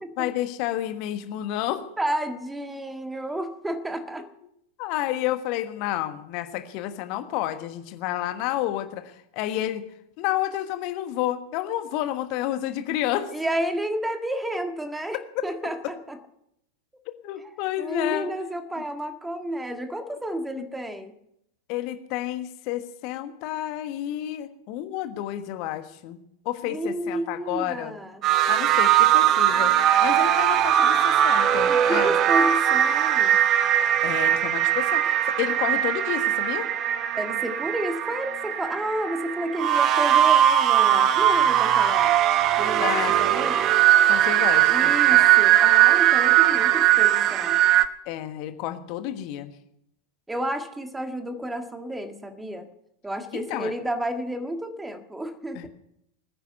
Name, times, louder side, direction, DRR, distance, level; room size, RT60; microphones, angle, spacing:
voice 1, 0.2-1.9 4.8-9.8 10.2-13.3 17.2-18.3 21.7-26.2 26.4-27.9 28.5-29.7 30.0-32.1 34.0-36.7 42.8-43.1 44.1-45.3 48.1-49.5 53.3-53.7 55.5-55.7, left 13 dB, 45° left, 9 dB, 1.4 m, -30 dB
voice 2, 2.0-4.2 13.3-16.2 17.4-21.1 26.6-28.2 31.7-33.4 37.1-42.2 42.6-42.9 43.2-43.6 44.7-47.6 50.3-52.7 53.0-55.7, right 1 dB, 5° right, 7 dB, 1.7 m, -31 dB
sound 1, 28.2-47.9, right 11 dB, 35° right, 1.0 m, -20 dB
21.0 x 10.0 x 6.8 m, 0.78 s
figure-of-eight pair, 90°, 0 cm